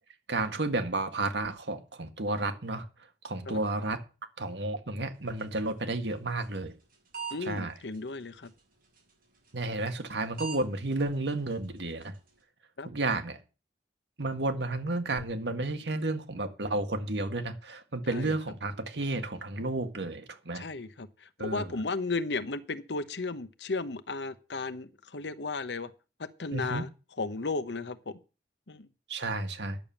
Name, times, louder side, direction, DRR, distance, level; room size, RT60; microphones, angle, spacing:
voice 1, 0.3-2.9 3.2-4.0 4.4-6.7 7.4-7.7 9.5-12.1 12.8-13.4 14.2-20.6 21.4-21.7 26.5-26.9 29.1-29.8, right 2 dB, 75° right, 1.6 m, -32 dB
sound 1, 5.1-12.4, right 6 dB, 55° right, 6.2 m, -48 dB
voice 2, 7.3-8.5 12.8-12.9 18.1-18.3 20.5-25.9 26.2-26.9 27.2-28.2 28.7-28.9, left 3 dB, 75° left, 0.9 m, -35 dB
10.5 x 7.1 x 7.1 m
head